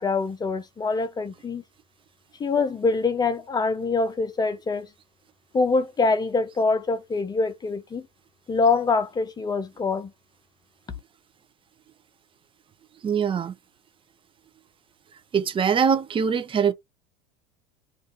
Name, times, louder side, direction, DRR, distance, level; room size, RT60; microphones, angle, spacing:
voice 1, 0.0-1.6 2.4-4.9 5.5-8.1 8.5-10.1, left 4 dB, 20° left, 0.7 m, -24 dB
voice 2, 13.0-13.5 15.3-16.7, right 7 dB, 25° right, 0.6 m, -22 dB
2.6 x 2.5 x 3.8 m
hypercardioid pair, 85°, 19 cm